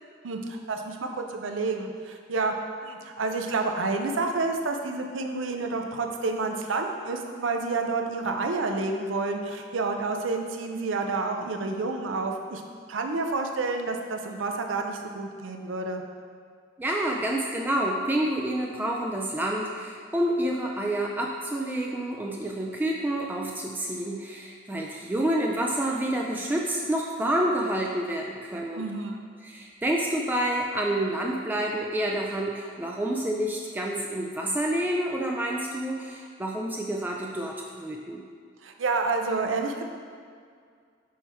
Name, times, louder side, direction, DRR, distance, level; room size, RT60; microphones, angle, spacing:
voice 1, 0.2-2.5 2.8-12.6 12.9-16.0 28.7-29.2 38.6-39.8, right 3 dB, 75° right, 4 dB, 0.6 m, -29 dB
voice 2, 16.8-28.9 29.4-38.2, right 1 dB, 10° right, -1 dB, 0.3 m, -28 dB
6.3 x 4.4 x 3.5 m, 2.1 s
head